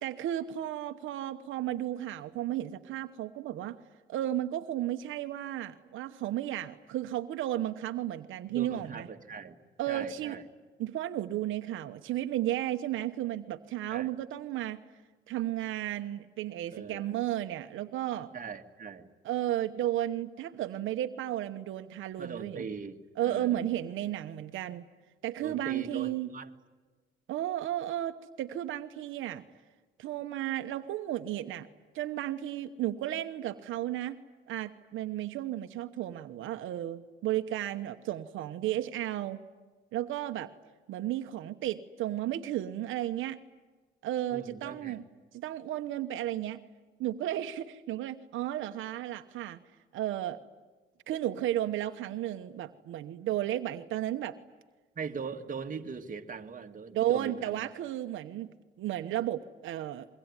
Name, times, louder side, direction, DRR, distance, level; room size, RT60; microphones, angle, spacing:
voice 1, 0.0-3.8 4.1-9.1 9.8-10.4 10.8-14.8 15.3-18.3 19.2-22.7 23.2-24.8 25.2-26.3 27.3-29.4 30.0-31.7 31.9-34.2 34.5-39.4 39.9-40.5 40.9-43.4 44.0-45.0 45.3-46.6 47.0-49.6 49.9-50.4 51.1-54.3 56.9-58.5 58.8-60.1, right 13 dB, 85° right, 7 dB, 1.1 m, -33 dB
voice 2, 8.5-10.4 13.9-14.1 16.7-17.1 18.3-19.1 22.2-23.7 25.4-26.5 44.3-45.0 55.0-57.6, right 5 dB, 40° right, 4 dB, 2.1 m, -41 dB
26.0 x 23.0 x 9.7 m, 1.3 s
cardioid pair, 90°, 20 cm